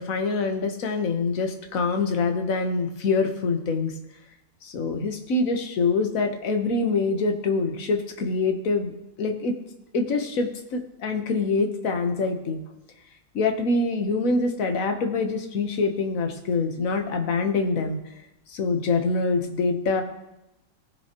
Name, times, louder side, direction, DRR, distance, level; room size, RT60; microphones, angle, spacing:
voice 1, 0.0-3.9 4.6-8.9 9.2-9.5 9.9-12.6 13.3-18.0 18.5-20.0, left 3 dB, 55° left, 5 dB, 1.4 m, -25 dB
18.0 x 6.7 x 2.9 m, 0.90 s
omnidirectional pair, 1.8 m